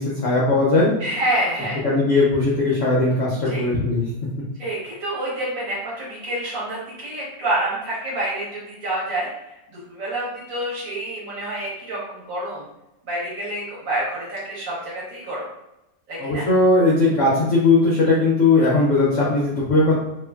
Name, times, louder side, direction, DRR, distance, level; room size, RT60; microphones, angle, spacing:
voice 1, 0.0-0.9 1.8-4.0 16.2-20.0, left 2 dB, 70° left, -6 dB, 0.7 m, -18 dB
voice 2, 1.0-1.8 3.5-3.6 4.6-9.3 9.7-12.6 13.0-15.5 16.1-16.5, right 1 dB, 55° right, -7 dB, 1.2 m, -27 dB
2.8 x 2.5 x 2.2 m, 0.92 s
omnidirectional pair, 2.0 m